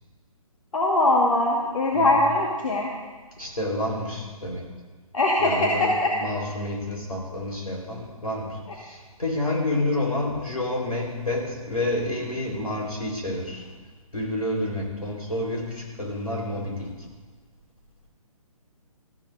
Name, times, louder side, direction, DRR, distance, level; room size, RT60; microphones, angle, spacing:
voice 1, 0.7-2.9 5.1-6.1, left 2 dB, 65° left, -2 dB, 1.8 m, -21 dB
voice 2, 3.4-4.6 5.4-13.7 14.1-16.9, left 1 dB, 85° left, -2 dB, 4.4 m, -29 dB
17.5 x 14.0 x 2.7 m, 1.4 s
figure-of-eight pair, 140°, 19 cm